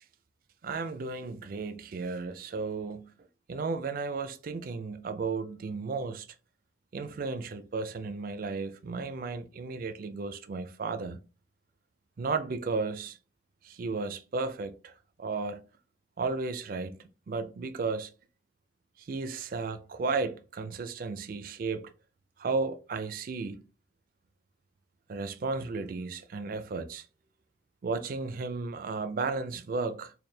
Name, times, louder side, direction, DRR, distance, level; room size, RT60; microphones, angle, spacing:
voice 1, 0.6-3.1 3.5-6.3 6.9-11.2 12.2-13.2 13.6-14.9 15.2-15.6 16.2-18.1 19.0-21.9 22.4-23.6 25.1-27.1 27.8-30.1, right 4 dB, 50° right, 0.4 m, -34 dB
4.2 x 2.2 x 3.3 m
head